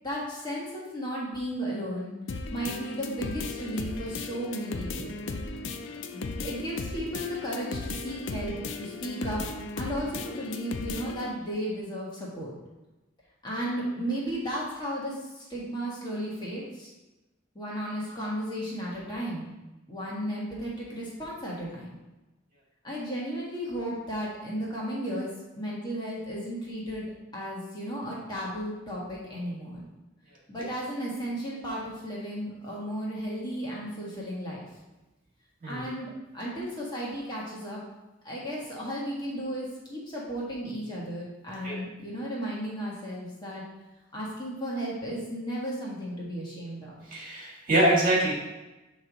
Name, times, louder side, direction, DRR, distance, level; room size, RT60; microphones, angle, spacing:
voice 1, 0.0-2.2 2.5-5.1 6.1-9.4 9.8-12.5 13.4-16.9 17.5-19.5 19.9-21.9 22.8-29.8 30.5-34.6 35.7-37.8 38.2-43.6 44.1-47.0, equal, 20° left, -6 dB, 1.4 m, -34 dB
sound 1, 2.3-11.3, left 3 dB, 70° left, 0.5 m, -36 dB
voice 2, 47.1-48.3, right 1 dB, 45° right, -5 dB, 1.7 m, -24 dB
7.6 x 3.2 x 3.9 m, 1.1 s
head